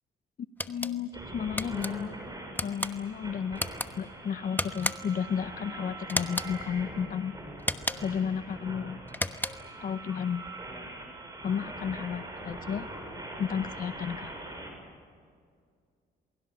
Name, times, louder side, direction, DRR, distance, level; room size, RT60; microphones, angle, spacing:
sound 1, 0.6-0.9 1.6-1.9 2.5-2.9 3.5-3.9 4.6-5.2 6.1-6.5 7.6-8.2 9.1-9.7, left 1 dB, 10° left, 1.1 m, -33 dB
voice 1, 0.7-2.1 2.6-3.6 3.9-7.3 8.0-9.0 9.8-10.4 11.4-12.9 13.4-14.3, left 7 dB, 45° left, 12 dB, 0.7 m, -32 dB
sound 2, 1.1-14.7, right 2 dB, 20° right, 6.9 m, -42 dB
28.0 x 22.0 x 7.0 m, 2.2 s
cardioid pair, 90°, 20 cm